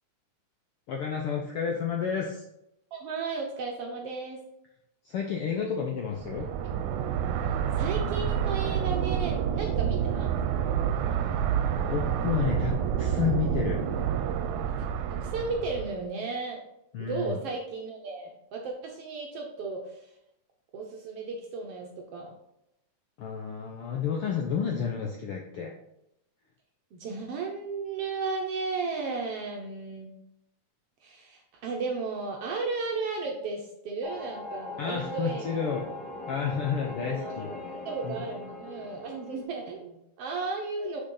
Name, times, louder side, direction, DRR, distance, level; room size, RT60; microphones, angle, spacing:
voice 1, 0.9-2.4 5.0-6.5 11.9-12.7 13.0-13.8 16.9-17.4 23.2-25.7 34.8-35.9 36.3-37.5 38.0-38.2, left 7 dB, 75° left, 1 dB, 1.3 m, -30 dB
voice 2, 2.9-4.4 6.6-6.8 7.8-10.3 15.1-16.6 17.0-20.1 20.7-22.3 26.9-30.1 31.0-35.8 37.0-41.0, right 4 dB, 65° right, 1 dB, 1.5 m, -34 dB
sound 1, 6.2-16.0, right 8 dB, 80° right, 2.0 m, -28 dB
sound 2, 34.0-39.4, left 3 dB, 20° right, 1.6 m, -41 dB
6.5 x 5.9 x 3.9 m, 0.82 s
omnidirectional pair, 3.5 m